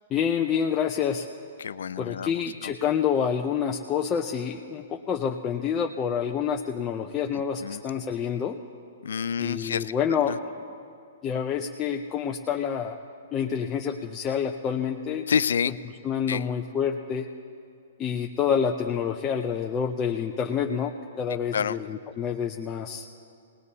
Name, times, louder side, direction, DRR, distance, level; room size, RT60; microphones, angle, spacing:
voice 1, 0.1-1.2 2.0-8.6 9.4-10.5 11.2-13.0 13.3-15.2 16.0-17.3 18.0-23.1, left 7 dB, 20° left, 1 dB, 0.5 m, -28 dB
voice 2, 1.6-2.7 7.3-7.8 9.0-9.9 10.3-10.4 15.3-15.7 16.3-16.5 21.5-21.8, left 7 dB, 85° left, 16 dB, 0.4 m, -28 dB
25.5 x 19.5 x 2.8 m, 2.4 s
hypercardioid pair, 160°, 0 cm